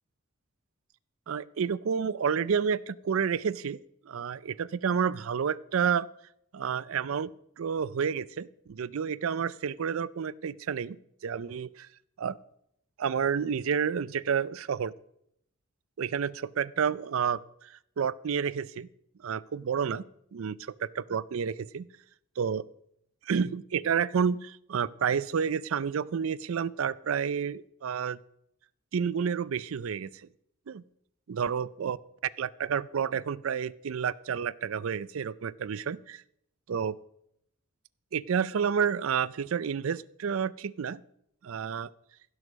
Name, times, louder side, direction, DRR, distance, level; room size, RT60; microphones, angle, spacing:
voice 1, 1.3-3.8 4.1-6.1 6.5-7.3 7.6-11.0 11.2-11.9 12.2-12.4 13.0-14.9 16.0-18.9 19.2-20.0 20.3-21.9 22.4-22.6 23.3-28.2 28.9-30.1 30.7-30.8 31.3-32.0 32.4-36.2 36.7-37.0 38.1-41.0 41.4-41.9, right 7 dB, 70° right, 19 dB, 0.4 m, -30 dB
16.0 x 6.3 x 6.1 m, 0.74 s
head